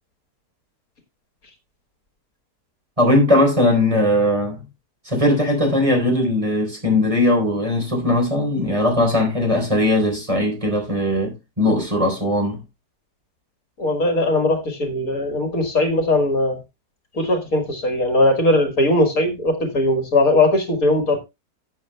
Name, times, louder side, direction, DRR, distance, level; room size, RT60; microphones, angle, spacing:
voice 1, 3.0-4.6 5.0-12.6, left 1 dB, 20° right, 4.1 m, -19 dB
voice 2, 13.8-16.6 17.2-21.2, left 1 dB, 60° left, 2.2 m, -19 dB
15.5 x 7.8 x 2.2 m
omnidirectional pair, 1.7 m